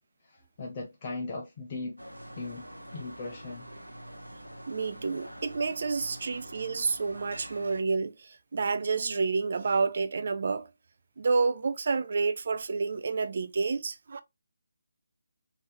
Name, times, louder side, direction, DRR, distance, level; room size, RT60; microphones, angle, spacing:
voice 1, 0.3-2.0 2.4-3.7 6.1-6.2, left 3 dB, 30° left, 0.6 m, -38 dB
sound 1, 2.0-7.8, right 1 dB, 85° right, 0.7 m, -46 dB
voice 2, 4.7-10.7 11.2-14.2, right 4 dB, 45° right, 0.4 m, -29 dB
3.6 x 2.6 x 3.1 m
figure-of-eight pair, 150°, 0 cm